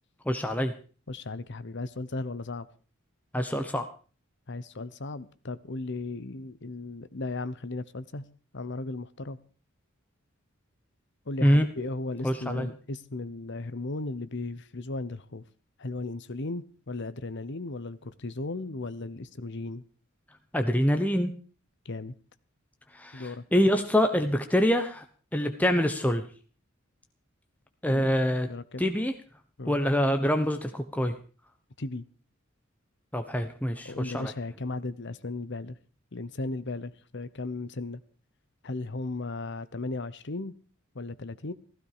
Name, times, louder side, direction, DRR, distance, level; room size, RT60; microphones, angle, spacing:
voice 1, 0.2-0.7 3.3-3.9 11.4-11.7 12.2-12.7 20.5-21.3 22.9-25.0 25.3-26.3 27.8-28.5 28.8-29.1 29.7-31.1 33.1-34.3, equal, 10° left, 6 dB, 1.1 m, -25 dB
voice 2, 1.1-2.7 4.5-8.3 8.5-9.4 11.3-15.4 15.8-19.8 21.8-22.1 23.1-23.4 27.9-28.1 28.5-28.9 29.6-29.8 31.8-32.1 33.8-35.8 36.1-38.0 38.6-40.5 40.9-41.5, left 2 dB, 60° left, 15 dB, 1.0 m, -36 dB
15.5 x 15.5 x 5.0 m, 0.39 s
head